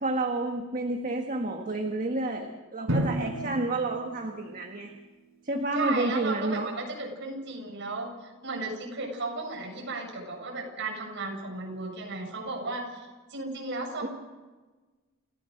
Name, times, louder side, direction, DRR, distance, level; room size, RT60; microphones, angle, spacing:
voice 1, 0.0-4.9 5.4-6.7 14.0-14.1, right 2 dB, 40° right, 3 dB, 1.6 m, -30 dB
Drum, 2.9-5.4, equal, 75° right, 5.6 m, -32 dB
voice 2, 5.7-14.1, right 3 dB, 60° right, 1 dB, 7.4 m, -35 dB
29.0 x 16.0 x 6.6 m, 1.3 s
head